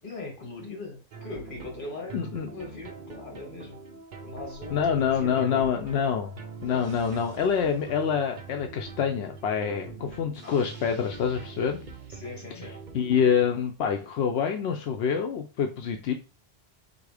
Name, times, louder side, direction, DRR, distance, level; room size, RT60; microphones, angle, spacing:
voice 1, 0.0-3.8 4.2-5.6 6.6-6.9 10.4-10.7 12.1-12.8, left 3 dB, 55° left, 0 dB, 1.9 m, -40 dB
sound 1, 1.1-13.6, right 4 dB, 50° right, 0.8 m, -43 dB
voice 2, 2.1-2.5 4.7-6.3 6.6-11.8 12.9-16.1, left 7 dB, 90° left, 4 dB, 0.8 m, -26 dB
3.8 x 2.9 x 4.8 m, 0.33 s
omnidirectional pair, 1.1 m